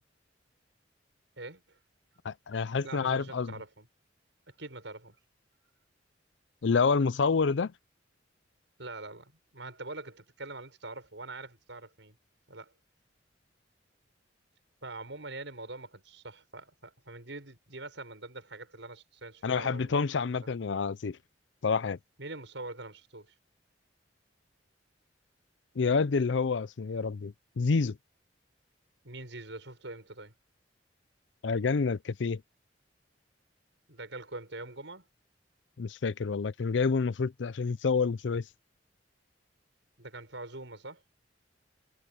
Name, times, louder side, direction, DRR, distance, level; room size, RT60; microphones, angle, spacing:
voice 1, 1.4-1.8 2.8-3.9 4.5-5.2 8.8-12.1 12.5-12.7 14.8-20.3 22.2-23.3 29.0-30.3 33.9-35.1 40.0-41.0, right 2 dB, 75° right, 6.4 m, -44 dB
voice 2, 2.2-3.5 6.6-7.7 19.4-21.2 21.6-22.0 25.8-28.0 31.4-32.4 35.8-38.4, left 5 dB, 75° left, 0.5 m, -28 dB
head